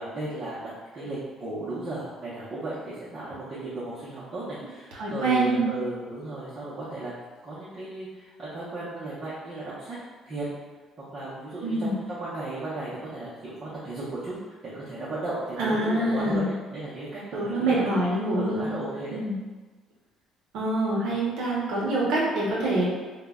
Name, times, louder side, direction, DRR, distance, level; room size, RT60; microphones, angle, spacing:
voice 1, 0.0-7.1 7.4-10.0 10.3-10.5 11.0-14.4 14.6-16.4 16.7-17.9 18.3-19.2, right 2 dB, 30° right, -11 dB, 0.5 m, -35 dB
voice 2, 4.9-5.7 11.6-11.9 15.6-16.5 17.3-18.7 19.1-19.4 20.5-22.8, right 2 dB, 75° right, -4 dB, 0.5 m, -25 dB
2.0 x 2.0 x 3.4 m, 1.3 s
cardioid pair, 170°, 0 cm